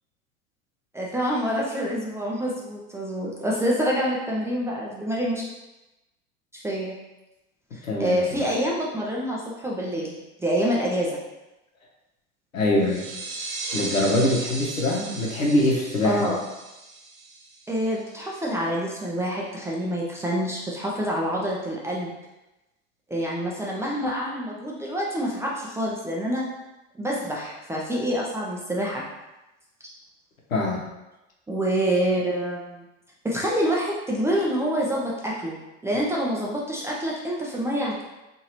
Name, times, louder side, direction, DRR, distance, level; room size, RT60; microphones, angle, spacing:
voice 1, 0.9-5.4 6.5-6.9 7.7-10.1 10.4-11.2 16.0-16.4 17.7-22.1 23.1-26.4 27.0-29.0 31.5-32.8 33.2-38.0, equal, 5° right, -4 dB, 0.4 m, -27 dB
voice 2, 7.8-8.5 12.5-13.1 13.7-16.4 30.5-30.8, left 1 dB, 90° left, -2 dB, 0.8 m, -23 dB
sound 1, 12.8-18.2, right 3 dB, 85° right, 0.6 m, -36 dB
2.8 x 2.6 x 2.9 m, 0.99 s
hypercardioid pair, 80°, 39 cm